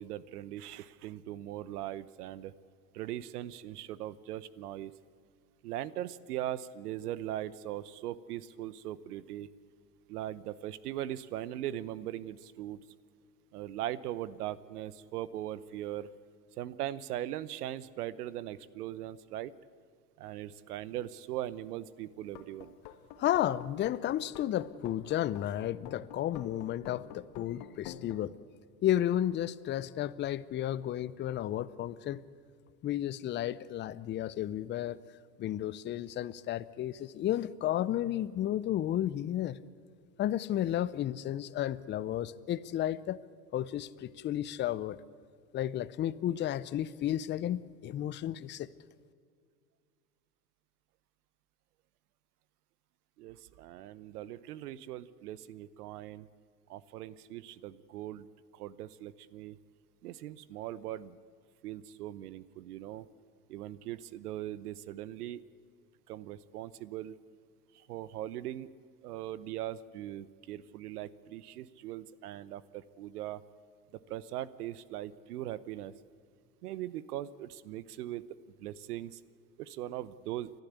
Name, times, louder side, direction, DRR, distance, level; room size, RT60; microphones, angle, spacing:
voice 1, 0.0-2.5 2.9-4.9 5.6-9.5 10.1-12.8 13.5-16.1 16.6-19.5 20.2-22.7 53.2-56.3 56.7-58.3 58.5-59.6 60.0-61.2 61.6-63.1 63.5-65.4 66.1-67.1 67.9-68.7 69.0-73.4 74.1-75.9 76.6-78.2 78.6-79.2 79.6-80.5, right 13 dB, 70° right, 18 dB, 1.0 m, -40 dB
sound 1, 22.2-28.2, left 10 dB, 50° left, 1.9 m, -48 dB
voice 2, 23.2-28.3 28.8-32.2 32.8-35.0 35.4-39.6 40.2-43.2 43.5-45.0 45.5-48.7, left 12 dB, 25° left, 16 dB, 0.6 m, -32 dB
30.0 x 12.0 x 8.4 m, 2.1 s
hypercardioid pair, 100°, 48 cm